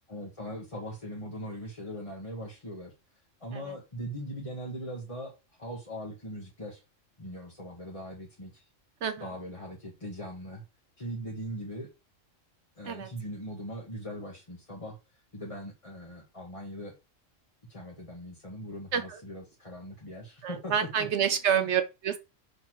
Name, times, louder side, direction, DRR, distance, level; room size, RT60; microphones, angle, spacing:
voice 1, 0.1-2.9 3.4-6.8 7.2-8.7 9.2-10.6 11.0-11.9 12.8-15.0 15.3-16.9 17.7-21.7, equal, 25° left, 1.3 m, -40 dB
voice 2, 20.4-22.2, right 8 dB, 65° right, 0.9 m, -28 dB
5.9 x 3.5 x 4.5 m
omnidirectional pair, 1.3 m